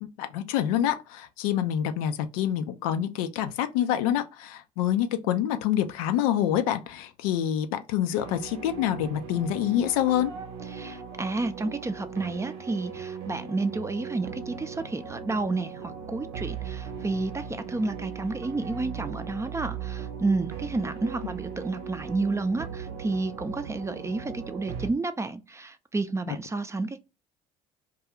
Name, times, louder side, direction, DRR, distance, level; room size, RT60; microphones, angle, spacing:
voice 1, 0.0-10.3 26.3-26.4, left 11 dB, 85° left, 0.4 m, -27 dB
sound 1, 8.1-24.9, right 7 dB, 80° right, 0.7 m, -38 dB
voice 2, 10.7-27.0, right 3 dB, 15° right, 0.4 m, -31 dB
2.3 x 2.3 x 2.9 m
hypercardioid pair, 65°, 18 cm